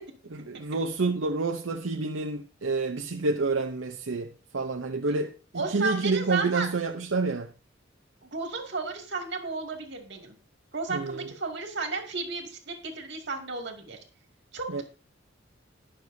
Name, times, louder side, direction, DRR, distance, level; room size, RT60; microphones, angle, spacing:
voice 1, 0.3-7.5 10.9-11.3 14.7-14.8, right 3 dB, 80° right, 0.8 m, -29 dB
voice 2, 5.5-6.7 8.2-10.4 10.7-14.0 14.5-14.8, right 3 dB, 60° right, 2.5 m, -33 dB
20.0 x 6.8 x 2.7 m
head